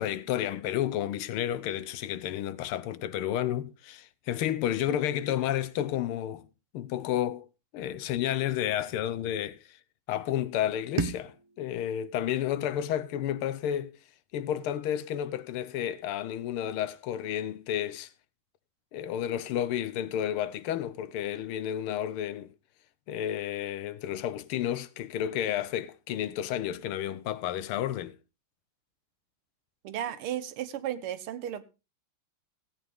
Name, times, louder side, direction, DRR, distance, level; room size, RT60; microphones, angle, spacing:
voice 1, 0.0-6.5 6.7-7.5 7.7-9.8 10.1-14.0 14.3-18.1 18.9-22.5 23.1-28.2, left 11 dB, 80° left, 1.6 m, -31 dB
sound 1, 11.0-13.9, right 4 dB, 45° right, 0.3 m, -38 dB
voice 2, 29.8-31.6, right 11 dB, 80° right, 1.8 m, -34 dB
16.5 x 8.7 x 3.5 m
omnidirectional pair, 2.4 m